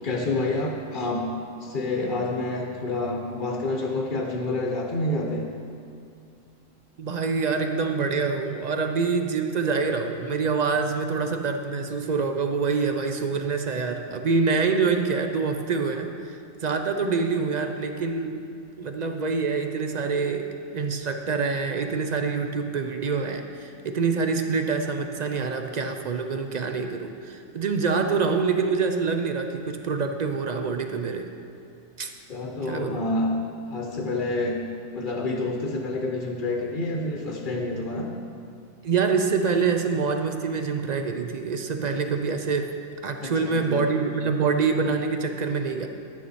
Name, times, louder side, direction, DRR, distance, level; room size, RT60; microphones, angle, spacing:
voice 1, 0.0-1.3 1.6-5.4 17.4-17.5 32.3-33.3 33.7-34.6 34.9-38.1 43.2-43.8, left 2 dB, 45° left, 1 dB, 0.9 m, -28 dB
voice 2, 7.0-18.4 18.8-20.5 20.7-31.3 32.0-32.1 32.7-33.0 38.8-42.7 43.0-45.9, right 5 dB, 60° right, 5 dB, 0.4 m, -26 dB
11.0 x 9.7 x 4.1 m, 2.4 s
omnidirectional pair, 1.4 m